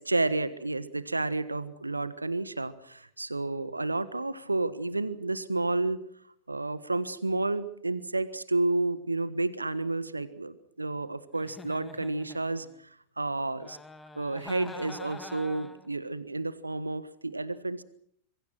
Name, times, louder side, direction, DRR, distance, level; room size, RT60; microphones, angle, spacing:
voice 1, 0.0-6.0 6.5-13.8 14.1-17.8, right 2 dB, 80° right, 15 dB, 1.4 m, -31 dB
Giggle, 11.3-12.8 13.6-15.9, left 2 dB, 10° left, 2.3 m, -46 dB
26.5 x 23.5 x 6.1 m, 0.67 s
figure-of-eight pair, 90°, 0 cm